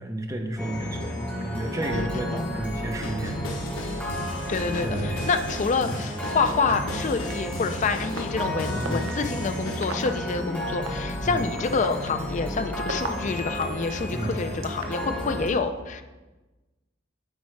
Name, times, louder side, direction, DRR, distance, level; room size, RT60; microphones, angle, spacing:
voice 1, 0.0-3.4 4.8-5.2 5.9-6.0 8.7-9.0 11.2-11.4 14.1-14.4, right 1 dB, 15° right, 4 dB, 0.5 m, -32 dB
sound 1, 0.6-15.5, left 1 dB, 5° left, 1.5 m, -32 dB
voice 2, 1.9-2.5 4.5-16.0, left 4 dB, 40° left, 9 dB, 0.4 m, -27 dB
sound 2, 3.0-9.9, left 1 dB, 85° left, 0.9 m, -36 dB
sound 3, 7.3-7.4 8.2-8.3 8.8-9.1 9.8-10.1 10.9-11.0 11.6-13.6 14.3-15.1, right 4 dB, 85° right, 0.7 m, -33 dB
8.2 x 4.6 x 3.2 m, 1.2 s
head